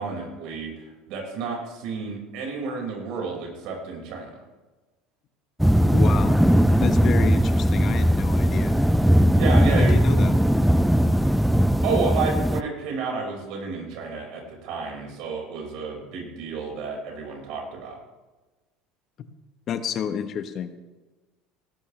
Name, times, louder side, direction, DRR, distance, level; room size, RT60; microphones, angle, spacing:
voice 1, 0.0-4.4 9.3-10.0 11.8-18.0, right 4 dB, 65° right, 0 dB, 5.3 m, -31 dB
sound 1, 5.6-12.6, equal, ahead, 0.4 m, -19 dB
voice 2, 5.9-6.4 6.8-8.8 9.7-10.3 19.2-19.3 19.7-20.7, left 8 dB, 50° left, 9 dB, 1.1 m, -30 dB
18.5 x 12.5 x 3.3 m, 1.2 s
supercardioid pair, 90°, 0 cm